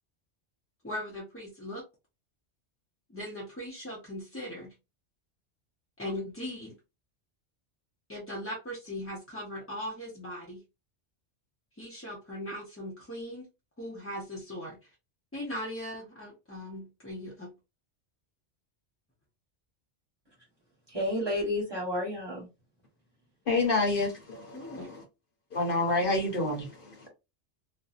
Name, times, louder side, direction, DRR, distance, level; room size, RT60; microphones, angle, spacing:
voice 1, 0.8-1.8 3.1-4.7 6.0-6.7 8.1-10.6 11.8-13.5 13.8-14.8 15.3-17.5 24.5-24.9, left 1 dB, 15° left, 0.5 m, -39 dB
voice 2, 20.9-22.5, left 1 dB, 25° right, 1.0 m, -31 dB
voice 3, 23.5-24.9 25.5-27.0, left 3 dB, 55° left, 0.9 m, -28 dB
2.5 x 2.0 x 2.4 m
omnidirectional pair, 1.2 m